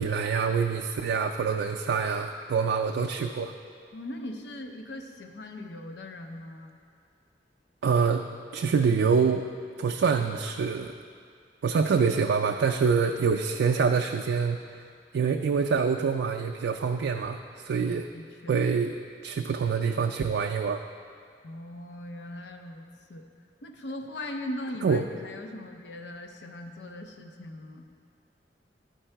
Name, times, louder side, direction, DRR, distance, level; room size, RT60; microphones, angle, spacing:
voice 1, 0.0-3.5 7.8-8.2 8.5-9.5 9.8-10.9 11.6-14.6 15.1-18.1 18.5-19.0 19.2-20.8 24.8-25.0, right 5 dB, 90° right, 3 dB, 0.3 m, -25 dB
voice 2, 3.9-6.8 17.7-18.6 21.4-22.8 23.1-23.2 23.6-27.9, left 1 dB, 75° left, 4 dB, 0.6 m, -40 dB
11.5 x 4.6 x 4.5 m, 2.3 s
head